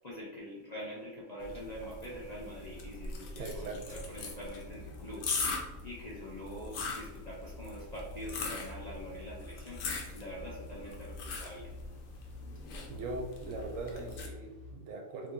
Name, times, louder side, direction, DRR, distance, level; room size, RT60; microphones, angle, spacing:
voice 1, 0.0-11.7, equal, 45° left, -6 dB, 0.6 m, -44 dB
sound 1, 1.4-14.3, left 4 dB, 75° left, 1.0 m, -41 dB
voice 2, 3.4-4.0 12.9-15.3, right 2 dB, 75° right, 3 dB, 0.9 m, -40 dB
sound 2, 4.1-14.7, left 3 dB, 40° right, 1.0 m, -50 dB
2.7 x 2.7 x 3.7 m, 1.1 s
omnidirectional pair, 1.4 m